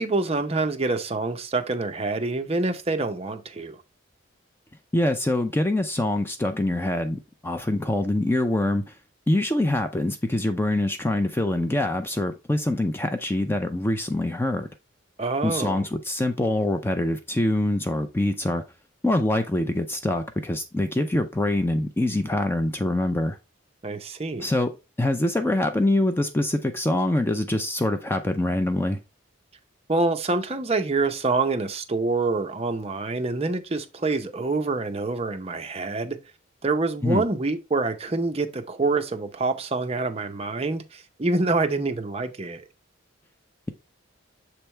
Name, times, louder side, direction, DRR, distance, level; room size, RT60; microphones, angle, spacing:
voice 1, 0.0-3.8 15.2-15.9 23.8-24.5 29.9-36.2 36.6-42.6, right 3 dB, 30° right, 0.6 m, -26 dB
voice 2, 4.9-8.8 9.3-14.7 15.4-18.6 19.0-23.4 24.4-24.7 25.0-29.0 37.0-37.2, left 1 dB, 10° left, 0.4 m, -24 dB
7.0 x 3.4 x 4.3 m
head